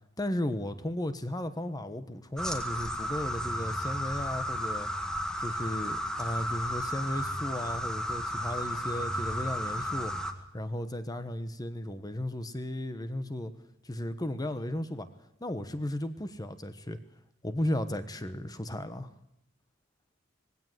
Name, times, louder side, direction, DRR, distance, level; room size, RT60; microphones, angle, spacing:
voice 1, 0.2-4.9 5.4-13.5 13.8-15.1 15.4-17.0 17.4-19.1, left 1 dB, 20° left, 11 dB, 1.1 m, -35 dB
sound 1, 2.4-10.3, equal, 5° left, 1.9 m, -33 dB
19.5 x 16.5 x 8.0 m, 0.84 s
head